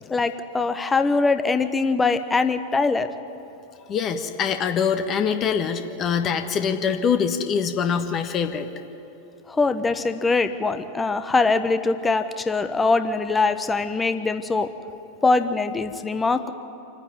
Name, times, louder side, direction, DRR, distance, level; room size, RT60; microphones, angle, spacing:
voice 1, 0.1-3.1 9.5-14.7 15.2-16.5, left 3 dB, 15° left, 10 dB, 1.1 m, -22 dB
voice 2, 3.9-8.7, left 7 dB, 30° left, 7 dB, 1.5 m, -24 dB
27.0 x 9.9 x 9.8 m, 2.9 s
figure-of-eight pair, 90°, 0 cm